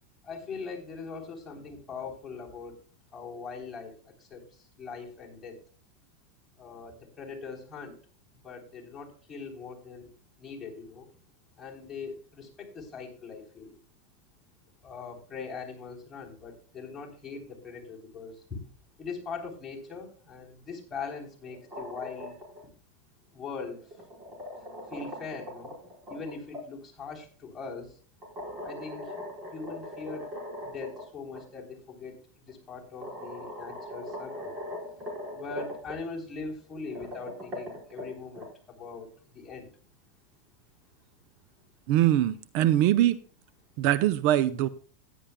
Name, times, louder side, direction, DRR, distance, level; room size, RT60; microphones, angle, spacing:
voice 1, 0.2-2.8 3.1-3.9 4.2-5.6 6.6-8.0 8.4-10.1 10.4-11.1 11.6-13.7 14.8-18.6 19.0-22.3 23.3-23.8 24.9-25.7 26.1-28.0 28.6-29.1 29.5-30.3 30.6-32.2 32.5-34.6 35.3-39.7, left 4 dB, 15° left, 3.6 m, -41 dB
sound 1, 21.5-22.6 23.8-26.6 28.2-31.0 31.3-31.4 32.5-32.6 33.0-35.9 36.8-38.5, left 1 dB, 30° right, 4.6 m, -40 dB
voice 2, 41.9-43.2 43.8-44.7, right 13 dB, 55° right, 0.6 m, -22 dB
15.5 x 10.0 x 2.2 m
supercardioid pair, 135°, 0 cm